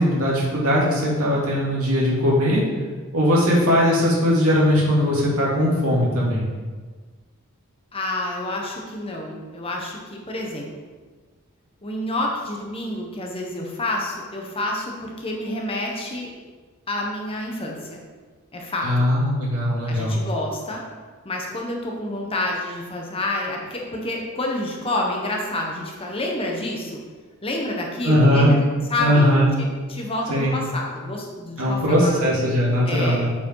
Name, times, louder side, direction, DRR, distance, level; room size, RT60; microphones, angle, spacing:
voice 1, 0.0-2.6 3.1-6.4 18.8-20.2 28.0-28.5 29.0-29.5 30.3-30.5 31.6-33.3, equal, 75° right, -5 dB, 2.4 m, -19 dB
voice 2, 7.9-10.7 11.8-16.3 16.9-18.0 18.5-19.1 19.9-20.8 21.2-27.0 27.4-28.5 28.9-29.3 29.6-32.1 32.8-33.2, left 1 dB, 25° left, 0 dB, 1.0 m, -28 dB
7.1 x 5.0 x 4.6 m, 1.4 s
head